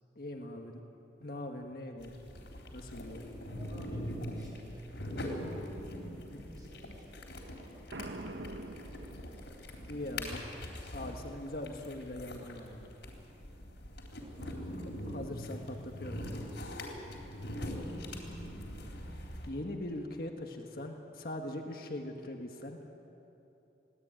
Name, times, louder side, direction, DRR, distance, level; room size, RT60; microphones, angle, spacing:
voice 1, 0.2-0.8 1.2-2.2 2.7-3.2 9.9-10.4 10.9-12.9 15.1-16.5 19.5-22.8, left 1 dB, 55° left, 3 dB, 1.6 m, -41 dB
sound 1, 2.0-19.5, left 1 dB, 85° left, 3.6 m, -42 dB
voice 2, 3.5-5.5 5.8-6.0 6.4-9.3 14.2-15.1 17.5-18.6, equal, 25° right, -2 dB, 6.1 m, -58 dB
Boom, 7.9-9.7, right 2 dB, 85° right, 1.2 m, -44 dB
22.5 x 17.0 x 9.0 m, 3.0 s
head